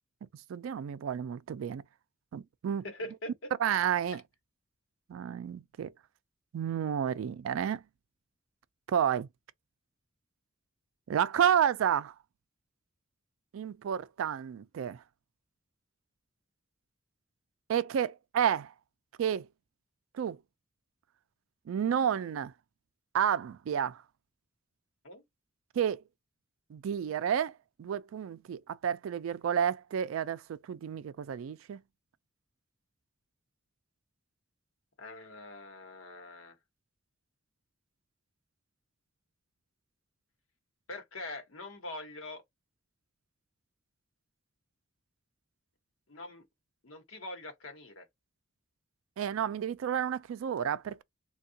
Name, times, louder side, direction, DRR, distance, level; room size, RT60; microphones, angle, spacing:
voice 1, 0.5-1.8 2.3-2.9 3.6-4.2 5.1-5.9 6.5-7.8 8.9-9.3 11.1-12.1 13.5-15.0 17.7-18.7 19.2-19.5 20.1-20.4 21.7-22.5 23.1-24.0 25.8-26.0 26.7-27.5 27.8-31.8 49.2-51.0, right 8 dB, 85° right, 0.3 m, -30 dB
voice 2, 2.8-3.5 4.1-4.2 25.0-25.2 35.0-36.6 40.9-42.4 46.1-46.5 46.8-48.1, left 1 dB, 85° left, 1.0 m, -43 dB
3.5 x 2.2 x 2.7 m
head